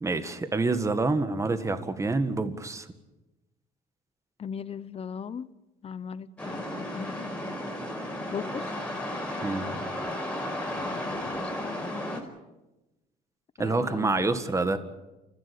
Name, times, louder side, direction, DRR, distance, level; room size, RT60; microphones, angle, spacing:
voice 1, 0.0-2.9 9.4-9.9 13.6-14.8, right 3 dB, 15° right, 1.8 m, -27 dB
voice 2, 4.4-5.5 5.8-7.3 8.3-8.7 10.7-12.2 13.6-14.3, left 7 dB, 35° left, 1.0 m, -39 dB
sound 1, 6.4-12.2, left 1 dB, 5° left, 5.3 m, -34 dB
29.0 x 15.0 x 8.5 m
cardioid pair, 110°, 17 cm